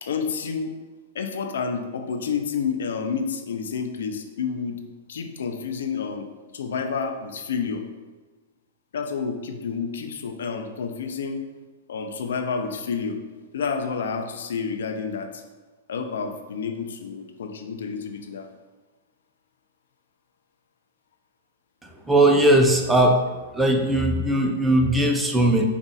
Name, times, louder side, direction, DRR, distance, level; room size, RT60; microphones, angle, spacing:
voice 1, 0.0-0.7 1.1-4.8 5.1-6.3 6.5-7.9 8.9-11.4 11.9-13.2 13.5-15.4 15.9-18.5, left 5 dB, 80° left, 6 dB, 0.5 m, -29 dB
voice 2, 22.1-23.2 23.5-25.6, right 1 dB, 5° right, 3 dB, 0.4 m, -19 dB
4.9 x 2.4 x 4.1 m, 1.3 s
hypercardioid pair, 150°, 0 cm